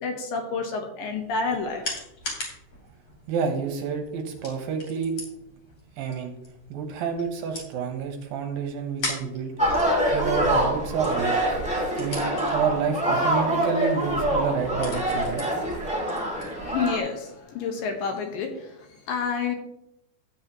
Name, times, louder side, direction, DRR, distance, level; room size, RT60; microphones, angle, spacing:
voice 1, 0.0-1.9 16.6-19.6, left 5 dB, 70° left, 3 dB, 2.7 m, -29 dB
sound 1, 1.0-17.4, left 2 dB, 40° left, 3.8 m, -41 dB
voice 2, 3.3-5.2 6.0-6.3 6.7-9.5 10.1-11.3 12.0-15.5, right 6 dB, 70° right, 4 dB, 2.6 m, -29 dB
sound 2, 9.6-17.0, right 1 dB, 5° right, 1.0 m, -25 dB
13.5 x 8.9 x 3.0 m, 0.81 s
omnidirectional pair, 4.5 m